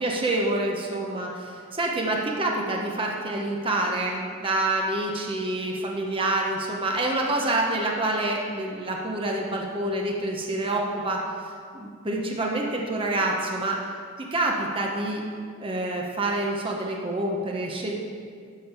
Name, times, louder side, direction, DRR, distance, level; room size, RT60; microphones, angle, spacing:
voice 1, 0.0-1.5 1.8-11.2 11.7-13.8 14.2-15.2 15.6-18.0, right 2 dB, 25° right, -1 dB, 1.0 m, -27 dB
11.5 x 5.4 x 6.8 m, 2.1 s
head